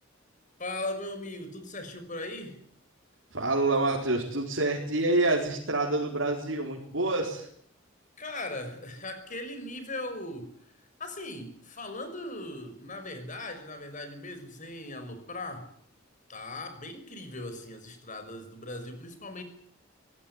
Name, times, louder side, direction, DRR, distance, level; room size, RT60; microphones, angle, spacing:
voice 1, 0.6-2.6 8.2-10.6 11.0-15.7 16.3-19.4, left 2 dB, 40° left, 5.9 m, -39 dB
voice 2, 3.3-7.5, right 2 dB, 75° right, 4.7 m, -27 dB
23.5 x 18.0 x 9.8 m
head